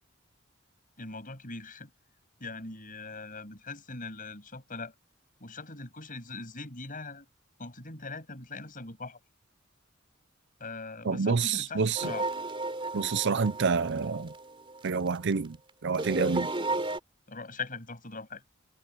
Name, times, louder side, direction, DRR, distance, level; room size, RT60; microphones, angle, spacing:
voice 1, 1.0-1.9 2.4-4.9 5.4-7.3 7.6-9.2 10.6-12.3 16.1-16.8 17.3-18.4, left 3 dB, 45° left, 7.4 m, -41 dB
voice 2, 11.1-12.1 12.9-14.3 14.8-15.6 15.8-16.5, right 5 dB, 60° right, 0.6 m, -28 dB
sound 1, 12.0-15.3 15.9-17.0, right 2 dB, 25° right, 3.8 m, -33 dB
head